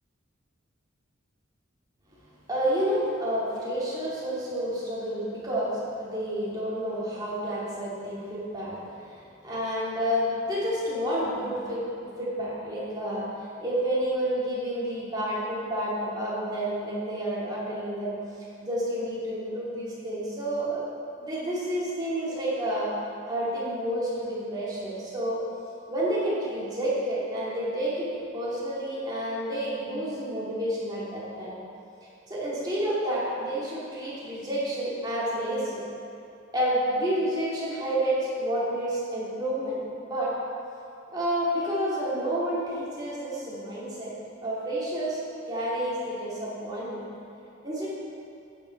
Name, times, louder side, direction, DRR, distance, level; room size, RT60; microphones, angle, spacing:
voice 1, 2.5-11.8 12.2-18.1 18.6-20.8 21.2-22.9 23.3-25.4 25.9-31.5 32.3-35.8 36.5-40.3 41.1-44.1 44.4-45.2 45.5-47.0 47.6-47.9, right 1 dB, 20° right, -8 dB, 2.6 m, -29 dB
11.0 x 9.1 x 4.6 m, 2.8 s
head